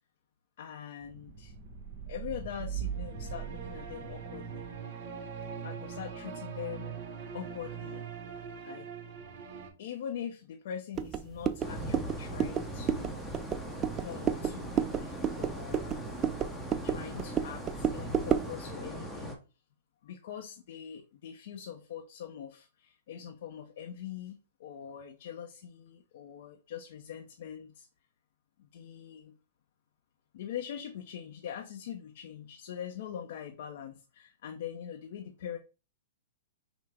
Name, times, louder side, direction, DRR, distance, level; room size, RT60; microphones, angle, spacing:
voice 1, 0.6-1.5 2.1-4.7 5.6-7.0 7.3-8.0 8.6-8.9 9.8-13.2 13.9-16.0 16.8-19.4 20.0-27.9 28.6-29.3 30.3-35.6, left 9 dB, 60° left, 0.5 m, -43 dB
sound 1, 1.0-9.7, right 7 dB, 50° right, 0.9 m, -41 dB
sound 2, 11.0-18.6, right 8 dB, 25° right, 0.3 m, -32 dB
sound 3, 11.6-19.3, right 1 dB, ahead, 0.7 m, -40 dB
5.8 x 2.0 x 3.3 m
hypercardioid pair, 140°, 0 cm